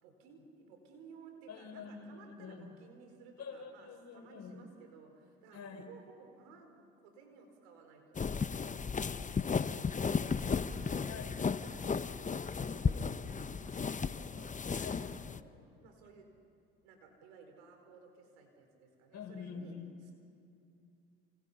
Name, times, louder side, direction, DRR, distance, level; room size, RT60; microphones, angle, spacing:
voice 1, 0.0-6.8 7.0-8.2 9.3-9.7 10.1-12.2 12.4-14.6 15.0-16.3 16.8-20.1, right 5 dB, 85° right, 4 dB, 4.5 m, -57 dB
voice 2, 1.5-2.7 3.4-4.5 5.5-5.8 8.8-10.3 11.1-11.3 14.7-15.1 15.3-15.4 19.1-19.9, left 6 dB, 50° left, 5 dB, 4.6 m, -47 dB
sound 1, 8.2-15.4, left 5 dB, 20° left, 0.9 m, -35 dB
28.5 x 27.5 x 5.6 m, 2.6 s
hypercardioid pair, 65°, 34 cm